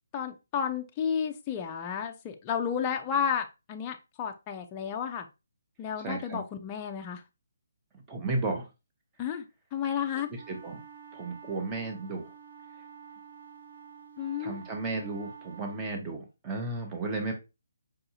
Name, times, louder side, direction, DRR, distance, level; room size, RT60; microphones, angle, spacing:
voice 1, 0.1-5.3 5.8-7.2 9.2-9.4 9.7-10.3 14.2-14.6, left 7 dB, 20° left, 4 dB, 0.3 m, -32 dB
voice 2, 6.0-6.4 8.1-8.6 10.5-10.8 11.1-12.3 14.4-17.3, right 2 dB, 15° right, 3 dB, 0.8 m, -33 dB
sound 1, 10.3-15.8, right 7 dB, 75° right, 1.4 m, -49 dB
4.7 x 2.5 x 2.8 m, 0.26 s
hypercardioid pair, 160°, 0 cm